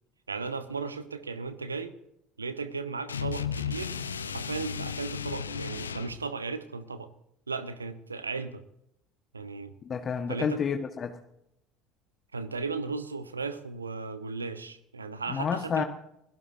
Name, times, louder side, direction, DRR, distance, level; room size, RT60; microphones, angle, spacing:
voice 1, 0.3-1.9 2.4-4.0 4.2-7.1 7.5-8.6 9.3-9.7 10.3-10.6 12.3-15.8, right 4 dB, 90° right, 12 dB, 1.0 m, -36 dB
sound 1, 3.1-6.2, left 7 dB, 85° left, 0.7 m, -34 dB
voice 2, 9.8-11.2 15.3-15.8, left 6 dB, 35° left, 6 dB, 1.3 m, -30 dB
29.0 x 17.0 x 2.7 m, 0.80 s
figure-of-eight pair, 65°, 0 cm